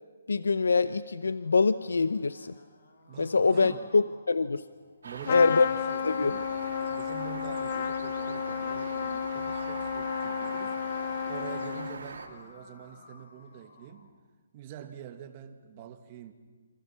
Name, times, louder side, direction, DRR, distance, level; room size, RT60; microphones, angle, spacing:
voice 1, 0.3-2.5 3.2-4.6 5.3-5.7 6.0-6.3, left 4 dB, 85° left, 14 dB, 0.8 m, -24 dB
sound 1, 1.2-5.1 6.0-10.3 11.7-14.2, left 2 dB, 70° left, 4.9 m, -57 dB
voice 2, 3.1-3.9 5.0-6.4 6.9-14.2 14.5-16.3, right 9 dB, 30° right, 7 dB, 2.0 m, -45 dB
sound 2, 5.0-12.3, right 4 dB, 75° right, 3.7 m, -41 dB
Trumpet, 5.2-12.2, left 8 dB, 40° left, 0.7 m, -32 dB
29.0 x 26.5 x 5.9 m, 1.4 s
hypercardioid pair, 160°, 0 cm